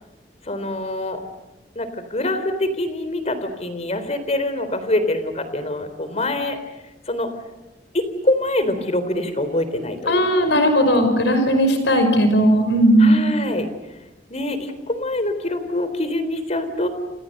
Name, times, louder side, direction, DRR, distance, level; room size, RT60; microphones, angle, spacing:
voice 1, 0.4-1.2 1.8-6.6 7.1-7.3 7.9-10.5 13.0-13.7 14.3-16.9, left 1 dB, 40° left, 10 dB, 3.8 m, -25 dB
voice 2, 10.1-13.2, equal, 85° left, 7 dB, 5.5 m, -16 dB
29.0 x 29.0 x 6.7 m, 1.0 s
head